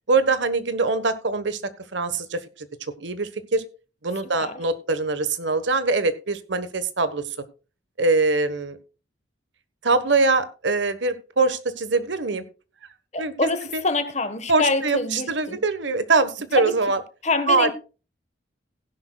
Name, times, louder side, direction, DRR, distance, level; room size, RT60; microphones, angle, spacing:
voice 1, 0.1-1.6 1.9-2.4 3.0-3.6 4.0-7.2 8.0-8.8 9.8-12.4 13.2-13.8 14.5-17.0 17.5-17.7, right 3 dB, 70° right, 1.3 m, -23 dB
voice 2, 4.2-4.5 13.1-15.6 16.5-16.7 17.2-17.7, left 3 dB, 35° left, 1.3 m, -25 dB
16.5 x 11.0 x 2.3 m
head